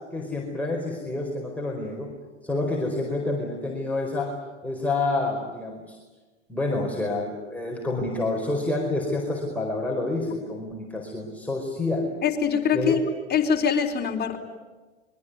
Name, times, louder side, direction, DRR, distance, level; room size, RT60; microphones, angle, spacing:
voice 1, 0.1-2.1 2.4-4.3 4.6-6.0 6.5-12.1 12.7-13.0, left 2 dB, 5° left, -2 dB, 4.7 m, -28 dB
voice 2, 12.2-13.0 13.3-14.4, left 7 dB, 25° left, 2 dB, 4.1 m, -23 dB
25.5 x 22.5 x 9.5 m, 1.3 s
hypercardioid pair, 90°, 36 cm